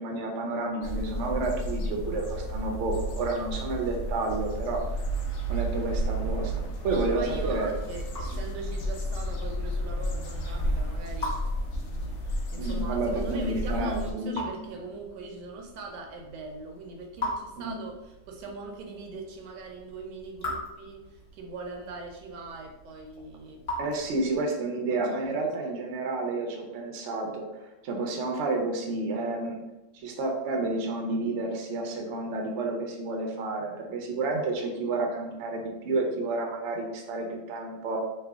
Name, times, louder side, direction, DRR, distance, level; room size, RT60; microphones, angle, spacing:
voice 1, 0.0-4.8 5.5-7.7 8.3-8.4 12.6-14.6 17.6-17.8 23.8-29.6 29.9-38.0, right 2 dB, 65° right, 1 dB, 0.7 m, -30 dB
sound 1, 0.8-14.1, right 1 dB, 75° left, 0.6 m, -32 dB
voice 2, 6.9-11.4 11.8-23.6 24.1-24.3 24.9-25.7, right 2 dB, 80° right, 2 dB, 1.2 m, -41 dB
Raindrop / Drip, 7.4-24.6, left 1 dB, 35° left, 1.0 m, -42 dB
3.2 x 2.1 x 3.4 m, 0.99 s
omnidirectional pair, 1.8 m